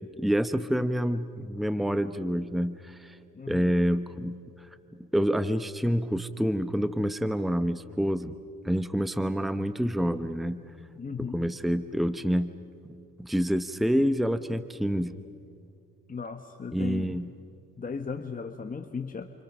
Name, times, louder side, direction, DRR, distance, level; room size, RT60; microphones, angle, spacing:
voice 1, 0.2-3.2 3.5-4.4 5.1-8.3 8.6-10.6 11.2-12.5 13.2-15.1 16.7-17.3, equal, ahead, 11 dB, 1.0 m, -27 dB
voice 2, 3.3-3.8 11.0-11.4 16.1-17.2 17.8-19.3, left 5 dB, 30° left, 6 dB, 1.3 m, -36 dB
29.5 x 28.0 x 6.2 m, 2.5 s
cardioid pair, 90°, 30 cm